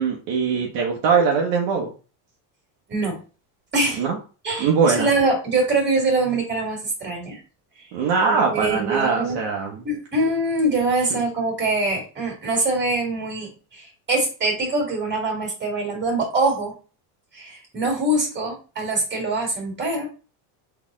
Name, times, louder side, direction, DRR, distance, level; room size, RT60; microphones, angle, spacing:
voice 1, 0.0-1.9 4.0-4.2 4.6-5.1 7.9-9.8, right 5 dB, 60° right, -1 dB, 1.2 m, -21 dB
voice 2, 3.7-4.0 4.4-7.4 8.2-9.4 9.8-16.7 17.3-20.1, right 2 dB, 20° right, 0 dB, 2.4 m, -24 dB
4.1 x 3.5 x 3.7 m, 0.35 s
cardioid pair, 130°, 48 cm